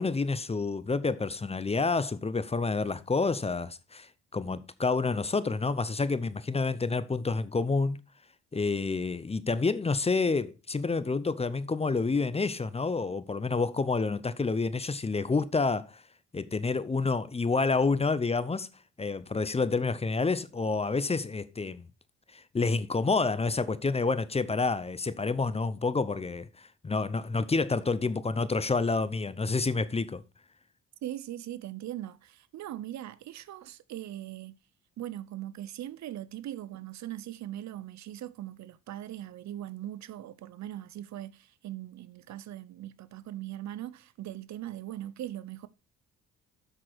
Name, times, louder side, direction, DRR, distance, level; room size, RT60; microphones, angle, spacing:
voice 1, 0.0-8.0 8.5-16.0 16.3-18.7 19.0-21.9 22.3-30.2, left 4 dB, 20° left, 0.7 m, -29 dB
voice 2, 31.0-34.5 35.0-45.7, right 13 dB, 65° right, 0.7 m, -40 dB
7.8 x 6.1 x 4.5 m
cardioid pair, 90°, 30 cm